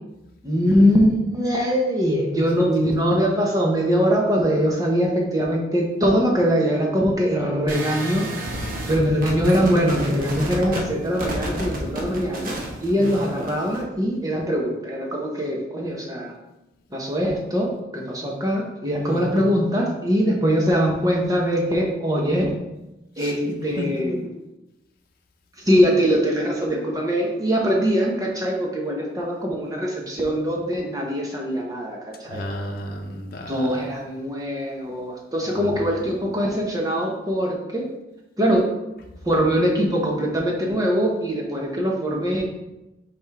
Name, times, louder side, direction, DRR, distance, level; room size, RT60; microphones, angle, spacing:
voice 1, 0.4-8.5 8.9-16.3 16.9-17.7 17.9-22.5 23.2-24.3 25.6-32.4 33.5-37.8 38.4-38.6 39.2-42.4, equal, 20° right, -1 dB, 1.1 m, -22 dB
sound 1, 7.7-13.8, right 1 dB, 55° right, 1.1 m, -31 dB
voice 2, 8.5-9.2 13.0-13.2 19.1-19.5 23.2-23.3 23.8-23.9 32.3-33.8 35.6-35.9, left 1 dB, 55° left, 1 dB, 0.8 m, -33 dB
5.2 x 5.1 x 3.5 m, 0.96 s
head